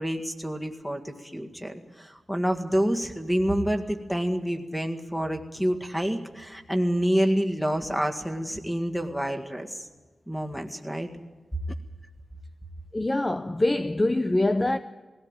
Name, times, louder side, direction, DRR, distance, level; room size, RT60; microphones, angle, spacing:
voice 1, 0.0-9.8 10.3-11.1, equal, 5° left, 1.9 m, -28 dB
voice 2, 12.9-14.8, left 2 dB, 20° left, 0.7 m, -24 dB
19.5 x 17.0 x 9.0 m
wide cardioid pair, 100°, 0 cm